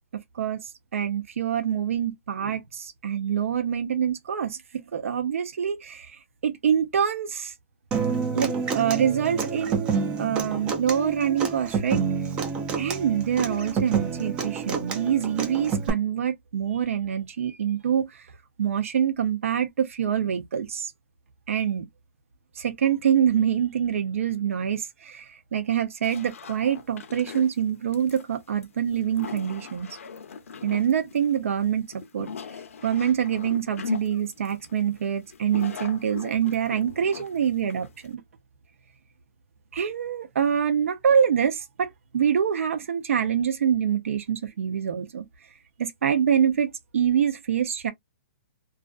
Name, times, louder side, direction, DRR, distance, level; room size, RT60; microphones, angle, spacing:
voice 1, 0.9-4.6 4.9-7.5 8.3-12.0 12.8-18.2 18.6-20.9 21.5-21.9 22.6-29.9 30.6-32.3 32.8-38.2 39.7-45.3 45.8-47.9, right 8 dB, 65° right, 0.7 m, -25 dB
Human voice / Acoustic guitar, 7.9-15.9, right 5 dB, 10° right, 0.3 m, -28 dB
sound 1, 26.0-38.1, left 5 dB, 70° left, 0.5 m, -39 dB
2.4 x 2.4 x 2.4 m
hypercardioid pair, 170°, 8 cm